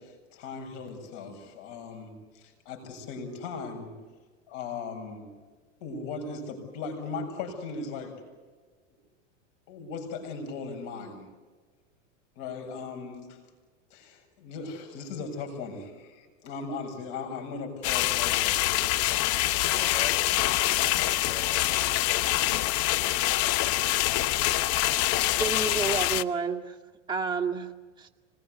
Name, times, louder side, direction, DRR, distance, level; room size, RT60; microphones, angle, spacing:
voice 1, 0.0-3.9 4.5-5.3 5.8-8.2 8.9-9.0 9.7-11.3 12.4-13.4 13.9-19.6, left 4 dB, 60° left, 5 dB, 7.4 m, -38 dB
sound 1, 17.8-26.2, left 15 dB, 40° left, 0.8 m, -25 dB
voice 2, 19.7-23.2, equal, 5° left, 3 dB, 5.7 m, -46 dB
voice 3, 25.4-26.8 27.1-27.7 28.0-28.1, right 5 dB, 10° right, -1 dB, 2.1 m, -30 dB
26.0 x 20.5 x 8.2 m, 1.4 s
hypercardioid pair, 115°, 37 cm